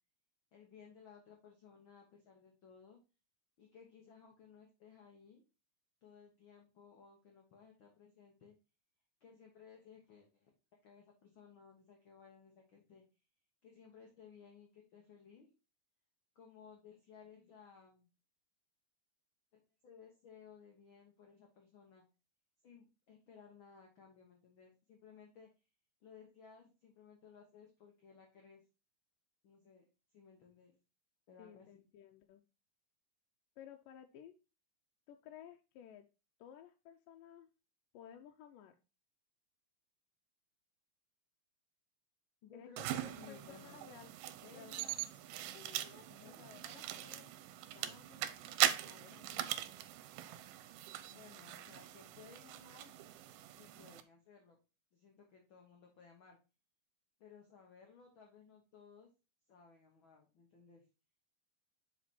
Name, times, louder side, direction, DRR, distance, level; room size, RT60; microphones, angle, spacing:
voice 1, 0.5-3.0 3.6-5.4 6.0-8.6 9.2-10.5 10.8-13.0 13.6-15.5 16.3-18.1 19.8-22.0 22.6-25.5 26.0-28.6 29.4-29.8 30.1-30.7 31.3-31.9 42.4-43.8 44.4-45.0 46.1-46.4 51.1-53.0 53.5-54.6 54.9-56.4 57.2-59.1 59.5-60.8, left 6 dB, 65° left, 0 dB, 1.2 m, -59 dB
voice 2, 31.4-32.4 33.6-34.4 35.1-36.1 36.4-37.5 37.9-38.8 42.5-44.1 44.5-44.9 45.5-47.3 47.8-48.3 48.6-49.5, left 9 dB, 85° left, 4 dB, 2.2 m, -56 dB
sound 1, 42.8-54.0, right 12 dB, 85° right, 2.2 m, -41 dB
6.2 x 5.0 x 4.2 m, 0.30 s
omnidirectional pair, 3.9 m